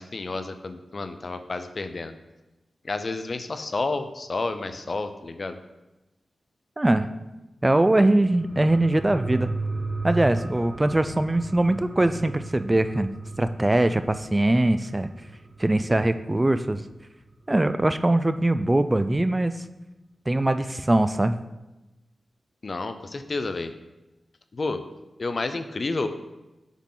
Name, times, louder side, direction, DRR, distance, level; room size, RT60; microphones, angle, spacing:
voice 1, 0.0-2.1 2.8-5.6 22.6-23.7 24.5-24.8 25.2-26.1, left 3 dB, 55° left, 9 dB, 0.5 m, -30 dB
voice 2, 6.8-7.1 7.6-9.5 10.0-13.1 13.4-15.1 15.6-16.8 17.5-19.5 20.3-21.3, right 1 dB, 20° right, 11 dB, 0.3 m, -22 dB
sound 1, 8.2-17.3 17.7-17.8, right 3 dB, 40° right, 0.9 m, -35 dB
7.2 x 3.8 x 3.8 m, 1.0 s
cardioid pair, 60°, 0 cm